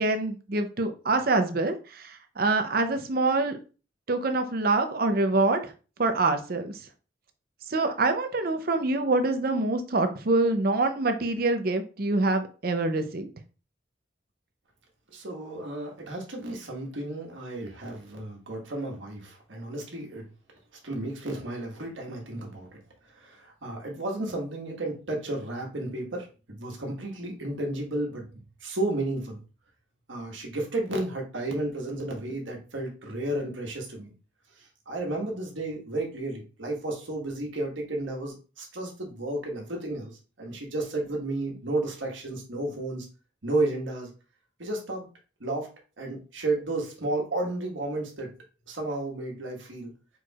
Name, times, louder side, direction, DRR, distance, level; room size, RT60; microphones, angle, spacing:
voice 1, 0.0-3.6 4.1-5.7 6.0-6.8 7.7-13.3, right 2 dB, 50° right, 8 dB, 0.6 m, -25 dB
voice 2, 15.1-20.2 20.8-22.8 23.1-28.3 28.6-29.4 30.1-34.1 34.9-40.1 40.4-43.1 43.4-44.1 44.6-45.1 45.4-45.7 46.0-48.3 48.7-49.9, right 2 dB, 85° right, 0 dB, 1.5 m, -32 dB
4.5 x 4.4 x 2.4 m, 0.34 s
head